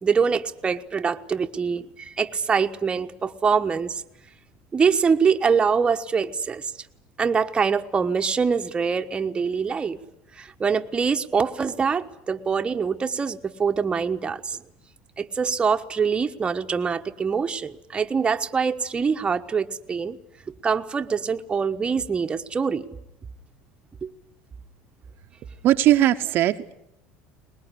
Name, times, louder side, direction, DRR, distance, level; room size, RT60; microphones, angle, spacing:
voice 1, 0.0-4.0 4.7-6.7 7.2-10.0 10.4-14.6 15.2-20.2 20.5-22.9 24.0-24.1, right 5 dB, 20° right, 6 dB, 1.2 m, -24 dB
voice 2, 25.6-26.7, right 13 dB, 55° right, 7 dB, 0.9 m, -19 dB
22.0 x 20.5 x 9.9 m, 0.82 s
supercardioid pair, 110°, 4 cm